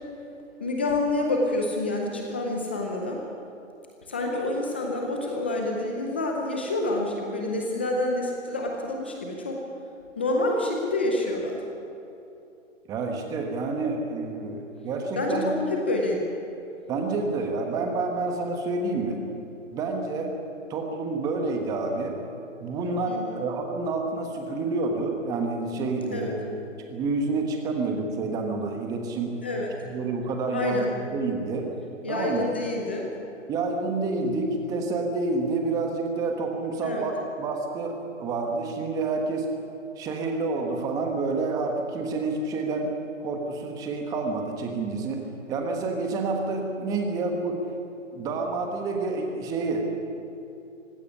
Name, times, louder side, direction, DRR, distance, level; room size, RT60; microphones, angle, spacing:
voice 1, 0.6-3.2 4.1-9.6 10.2-11.6 15.2-16.2 23.1-23.4 26.1-26.3 29.4-29.7 30.5-30.9 32.0-33.2 36.8-37.1, left 2 dB, 10° left, 0 dB, 0.6 m, -28 dB
voice 2, 12.9-15.5 16.9-19.2 19.7-20.4 20.7-22.2 22.6-26.4 26.9-29.3 29.8-31.7 32.1-32.4 33.5-39.5 40.0-45.2 45.5-47.6 48.1-49.8, right 3 dB, 10° right, 3 dB, 1.4 m, -28 dB
18.0 x 16.5 x 9.8 m, 2.8 s
hypercardioid pair, 160°, 39 cm